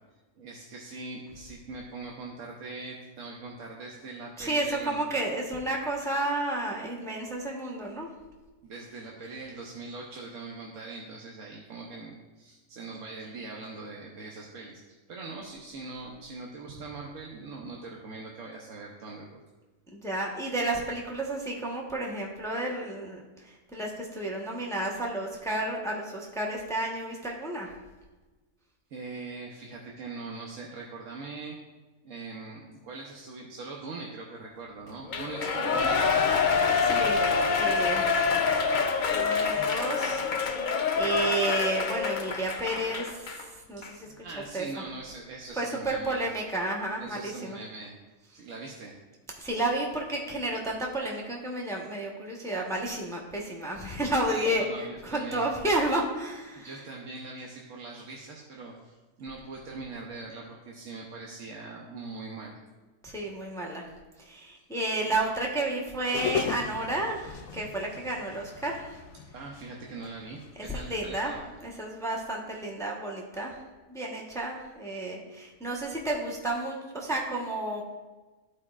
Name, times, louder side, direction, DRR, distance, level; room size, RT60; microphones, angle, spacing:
voice 1, 0.4-5.1 8.6-19.4 28.9-31.6 32.0-36.3 43.8-43.9 44.2-46.3 47.0-47.9 48.3-48.9 54.3-55.4 56.6-62.6 65.0-65.1 69.3-71.4, right 3 dB, 65° right, -2 dB, 1.1 m, -42 dB
voice 2, 4.4-8.1 19.9-27.7 36.8-38.2 38.8-44.1 44.5-44.6 45.6-47.6 49.4-56.7 63.0-63.9 64.2-68.9 70.7-71.3 71.6-73.6 73.9-77.8, right 1 dB, 5° left, -2 dB, 0.8 m, -31 dB
Shout / Cheering, 35.1-43.4 43.8-43.9, left 5 dB, 55° left, 0.5 m, -26 dB
sound 1, 66.1-71.7, left 8 dB, 80° left, 1.0 m, -37 dB
13.5 x 4.7 x 2.4 m, 1.2 s
omnidirectional pair, 1.5 m